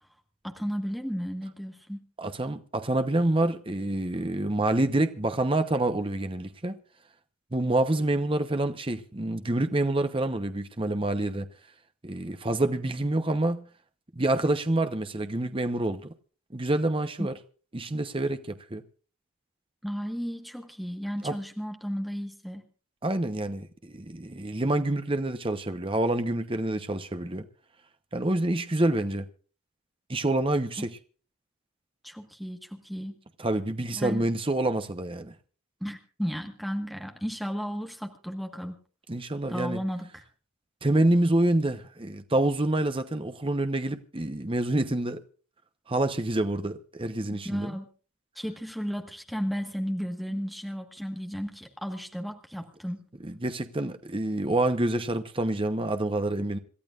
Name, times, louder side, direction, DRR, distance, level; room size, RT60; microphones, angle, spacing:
voice 1, 0.4-2.0 17.2-17.3 19.8-22.6 32.0-33.2 33.9-34.3 35.8-38.8 39.5-40.2 47.3-47.9 48.3-53.0, equal, ahead, 1.5 m, -34 dB
voice 2, 2.2-6.8 7.5-11.5 12.0-13.6 14.2-16.1 16.5-17.3 17.7-18.8 21.2-21.3 23.0-27.4 28.1-29.2 30.1-30.9 33.4-35.3 39.1-39.8 40.8-45.2 45.9-47.8 53.2-56.6, right 1 dB, 25° right, 0.9 m, -27 dB
27.0 x 13.0 x 2.5 m
head